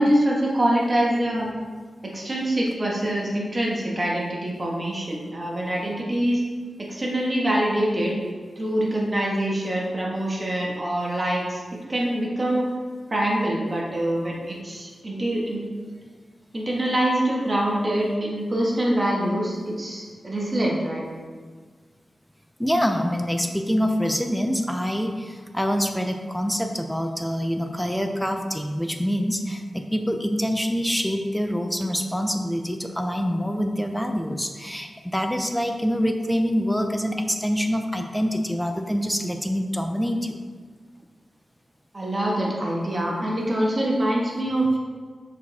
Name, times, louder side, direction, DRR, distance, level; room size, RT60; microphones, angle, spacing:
voice 1, 0.0-1.5 2.0-6.4 6.8-8.1 8.6-11.6 11.9-12.6 13.1-15.6 16.5-21.0 41.9-44.8, right 1 dB, 35° right, -3 dB, 1.7 m, -24 dB
voice 2, 22.6-40.4, equal, 5° left, 5 dB, 0.7 m, -25 dB
6.2 x 5.0 x 3.6 m, 1.5 s
cardioid pair, 60°, 0 cm